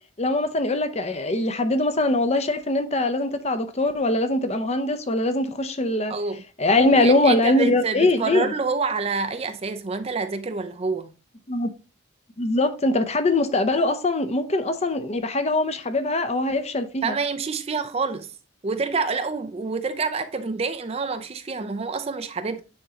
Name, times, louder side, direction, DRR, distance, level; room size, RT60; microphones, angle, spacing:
voice 1, 0.2-6.1 6.6-8.5 11.5-11.7 12.4-17.2, left 2 dB, 30° left, 0.6 m, -22 dB
voice 2, 6.1-6.4 6.9-11.1 17.0-18.3 18.6-22.6, right 4 dB, 30° right, 0.5 m, -27 dB
9.7 x 3.7 x 2.8 m
head